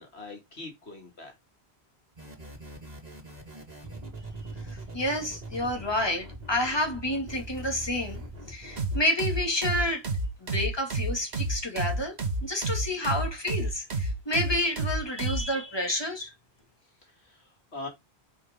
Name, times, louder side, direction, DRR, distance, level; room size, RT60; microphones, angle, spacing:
voice 1, 0.0-1.3 17.2-17.4 17.7-17.9, left 3 dB, 85° left, 2.7 m, -41 dB
sound 1, 2.1-9.0, right 1 dB, 40° right, 2.0 m, -42 dB
voice 2, 4.6-8.2 8.5-10.0 10.4-16.3, left 1 dB, 25° left, 2.5 m, -29 dB
sound 2, 8.8-15.5, right 2 dB, 80° right, 1.8 m, -29 dB
9.3 x 5.2 x 3.8 m
omnidirectional pair, 1.1 m